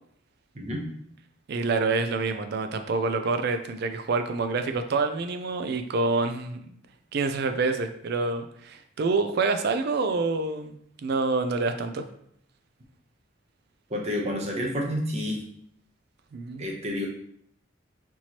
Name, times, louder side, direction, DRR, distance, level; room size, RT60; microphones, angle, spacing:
voice 1, 1.5-6.7 7.1-10.8 11.0-12.0 16.3-16.7, right 3 dB, 50° right, 7 dB, 0.3 m, -27 dB
voice 2, 13.9-15.4 16.6-17.1, left 1 dB, 35° right, 0 dB, 0.7 m, -29 dB
4.4 x 2.8 x 2.9 m, 0.68 s
head